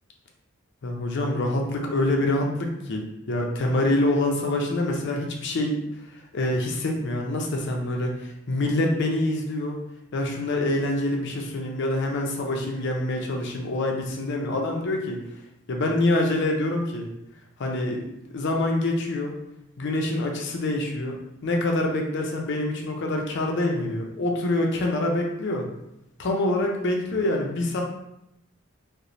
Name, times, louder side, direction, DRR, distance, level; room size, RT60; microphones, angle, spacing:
voice 1, 0.8-5.7 6.3-9.8 10.1-15.2 15.7-17.1 17.6-19.4 19.8-25.7 26.2-27.8, left 1 dB, 60° left, 1 dB, 0.5 m, -26 dB
3.0 x 2.1 x 2.5 m, 0.83 s
head